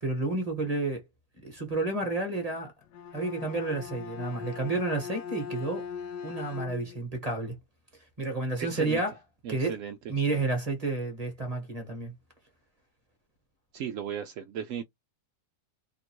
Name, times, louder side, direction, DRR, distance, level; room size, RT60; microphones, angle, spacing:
voice 1, 0.0-1.0 1.4-2.7 3.1-5.8 6.2-7.5 8.2-9.1 9.5-9.8 10.1-12.1, right 2 dB, 25° right, 1.2 m, -30 dB
Bowed string instrument, 2.8-7.1, left 7 dB, 90° left, 1.3 m, -40 dB
voice 2, 8.6-9.0 9.4-10.0 10.3-10.4 13.7-14.8, right 8 dB, 70° right, 0.8 m, -36 dB
3.0 x 2.5 x 4.4 m
omnidirectional pair, 1.7 m